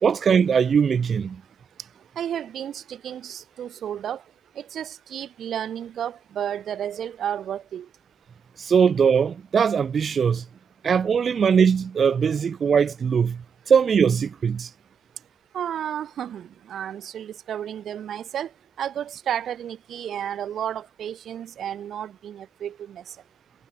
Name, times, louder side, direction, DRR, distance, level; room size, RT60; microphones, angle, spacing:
voice 1, 0.0-1.4 8.6-10.5 10.8-14.7, right 6 dB, 45° right, 2.0 m, -21 dB
voice 2, 2.2-4.2 4.6-7.9 15.5-18.5 18.8-23.0, right 10 dB, 70° right, 2.5 m, -32 dB
cardioid pair, 135°, 0 cm